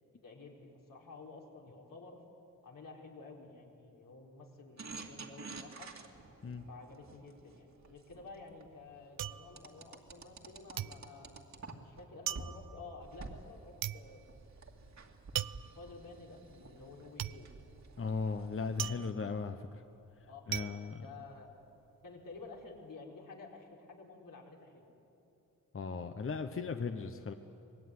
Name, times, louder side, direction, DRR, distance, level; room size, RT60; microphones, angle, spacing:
voice 1, 0.0-2.2 2.6-5.9 6.7-11.4 11.8-14.3 15.8-17.5 20.2-21.5 22.0-24.9, left 3 dB, 75° left, -1 dB, 4.3 m, -52 dB
sound 1, 4.8-8.7 9.6-12.0 12.3-12.5 13.0-19.1, right 4 dB, 55° right, 2.3 m, -50 dB
sound 2, 8.1-10.5 10.8-21.9 22.2-22.8, right 11 dB, 90° right, 0.6 m, -42 dB
voice 2, 18.0-19.8 20.2-21.1 25.7-27.3, left 4 dB, 40° left, 7 dB, 1.0 m, -37 dB
25.0 x 20.5 x 9.6 m, 2.9 s
wide cardioid pair, 95°, 33 cm